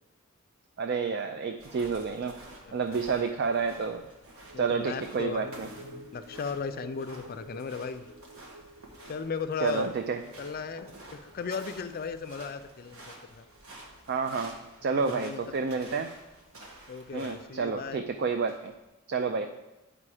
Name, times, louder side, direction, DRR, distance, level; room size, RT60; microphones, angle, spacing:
voice 1, 0.8-2.4 2.7-4.0 4.6-5.7 9.6-10.2 14.1-14.5 14.8-16.1 17.1-18.7 19.1-19.5, right 5 dB, 50° right, 7 dB, 0.4 m, -29 dB
sound 1, 1.6-18.8, right 1 dB, 90° right, 1.5 m, -51 dB
voice 2, 2.6-3.3 4.5-8.0 9.1-9.9 10.4-10.9 11.2-13.5 15.0-15.4 15.7-16.0 16.9-18.0, left 5 dB, 45° left, 10 dB, 0.4 m, -37 dB
sound 2, 4.4-15.0 15.3-15.5, right 1 dB, 70° right, 3.1 m, -52 dB
8.7 x 5.0 x 4.9 m, 1.0 s
head